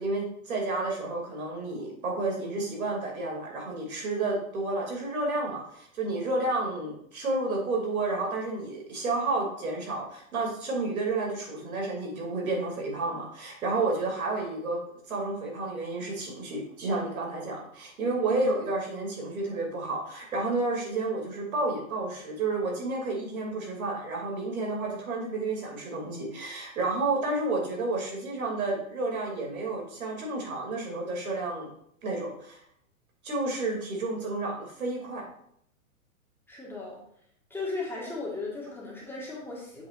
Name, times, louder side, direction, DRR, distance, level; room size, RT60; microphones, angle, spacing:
voice 1, 0.0-14.8 15.1-31.7 32.0-32.6 33.2-35.2, right 2 dB, 75° right, 0 dB, 2.7 m, -31 dB
voice 2, 18.1-18.5 36.5-37.0 37.5-39.9, left 3 dB, 5° left, -5 dB, 1.6 m, -36 dB
7.5 x 5.8 x 2.5 m, 0.69 s
hypercardioid pair, 120°, 42 cm